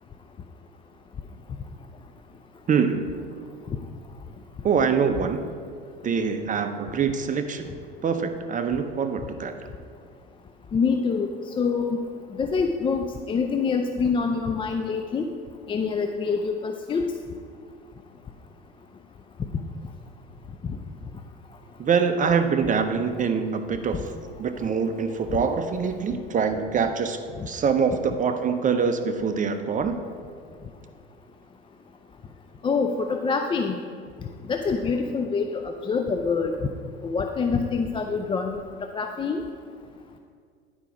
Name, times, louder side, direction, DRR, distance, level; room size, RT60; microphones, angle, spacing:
voice 1, 2.7-3.2 4.6-5.4 6.0-7.7 8.0-9.5 21.8-24.0 24.4-27.2 27.4-30.0, right 6 dB, 25° right, 7 dB, 0.7 m, -24 dB
voice 2, 10.7-11.3 11.6-12.0 12.4-15.3 15.7-17.0 32.6-33.8 34.5-36.5 37.0-38.6 38.9-39.4, left 5 dB, 15° left, 5 dB, 0.4 m, -25 dB
10.5 x 5.1 x 4.9 m, 2.1 s
hypercardioid pair, 75°, 30 cm